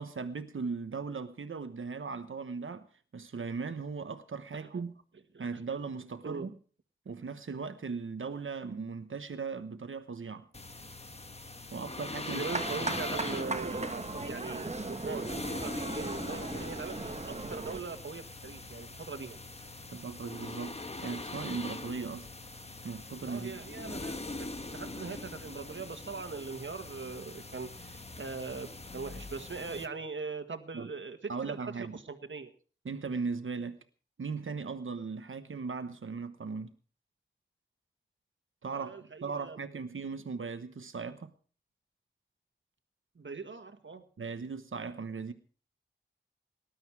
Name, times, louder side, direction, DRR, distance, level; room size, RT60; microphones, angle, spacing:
voice 1, 0.0-2.9 3.1-5.0 5.4-6.5 7.1-10.5 11.7-12.4 19.9-22.3 22.8-23.6 30.7-30.9 31.3-31.9 32.8-33.8 34.2-36.7 38.6-41.3 44.2-45.3, right 4 dB, 90° right, 1.1 m, -38 dB
voice 2, 4.5-4.8 5.3-5.5 6.2-6.5 12.2-19.4 23.2-32.5 38.7-39.7 43.1-44.0, right 4 dB, 70° right, 1.7 m, -41 dB
sound 1, 10.5-29.9, left 2 dB, 30° left, 1.2 m, -42 dB
sound 2, 12.5-17.8, right 3 dB, 35° right, 1.2 m, -37 dB
19.5 x 11.5 x 4.8 m
wide cardioid pair, 75°, 20 cm